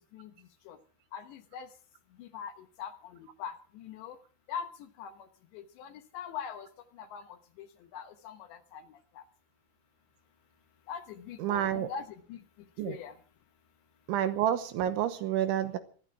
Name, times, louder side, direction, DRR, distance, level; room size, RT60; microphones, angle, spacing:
voice 1, 1.1-1.7 2.2-2.5 2.8-2.9 3.4-4.2 4.5-4.7 5.0-5.1 5.5-6.7 7.0-7.2 7.6-7.7 7.9-8.8 9.2-9.3 10.9-12.4 12.8-13.1, left 7 dB, 70° left, 8 dB, 3.0 m, -41 dB
voice 2, 11.4-11.9 12.8-13.0 14.1-15.8, right 11 dB, 80° right, 10 dB, 3.2 m, -29 dB
20.5 x 14.0 x 4.7 m, 0.42 s
omnidirectional pair, 5.8 m